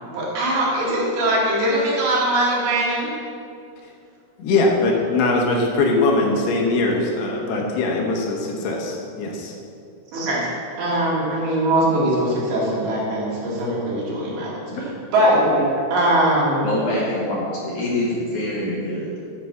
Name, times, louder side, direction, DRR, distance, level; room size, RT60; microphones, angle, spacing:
voice 1, 0.1-3.1 10.1-10.5 10.8-14.5 15.1-15.4 15.9-16.7, right 1 dB, 70° right, -5 dB, 3.9 m, -21 dB
voice 2, 4.4-9.5, left 2 dB, 80° left, 0 dB, 3.2 m, -21 dB
voice 3, 16.6-19.3, left 1 dB, 60° left, -5 dB, 2.3 m, -25 dB
10.0 x 4.9 x 7.0 m, 2.5 s
omnidirectional pair, 4.7 m